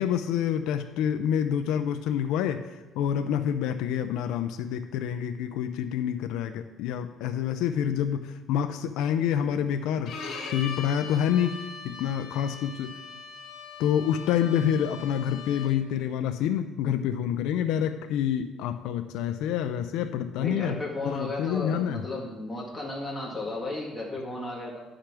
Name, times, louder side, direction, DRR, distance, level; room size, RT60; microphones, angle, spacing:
voice 1, 0.0-13.0 13.8-20.8 21.0-22.1, left 9 dB, 70° left, 8 dB, 0.5 m, -27 dB
Bowed string instrument, 10.1-15.9, left 5 dB, 50° left, 1.5 m, -41 dB
voice 2, 20.4-24.8, left 2 dB, ahead, -6 dB, 1.9 m, -34 dB
10.5 x 5.1 x 6.0 m, 1.1 s
cardioid pair, 180°, 0 cm